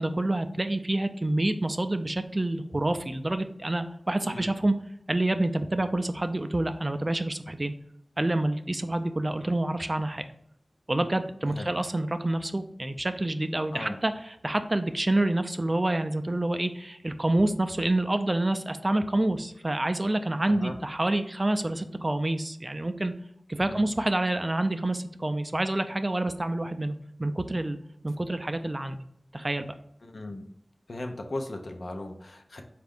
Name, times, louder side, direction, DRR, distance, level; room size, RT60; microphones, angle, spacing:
voice 1, 0.0-4.7 5.1-7.7 8.2-10.2 10.9-23.1 23.5-27.8 28.0-29.0 29.3-29.7, right 1 dB, 35° right, 9 dB, 0.3 m, -27 dB
voice 2, 30.0-30.4 30.9-32.6, left 2 dB, 75° left, 3 dB, 0.6 m, -37 dB
4.4 x 2.5 x 3.5 m, 0.73 s
wide cardioid pair, 65°, 0 cm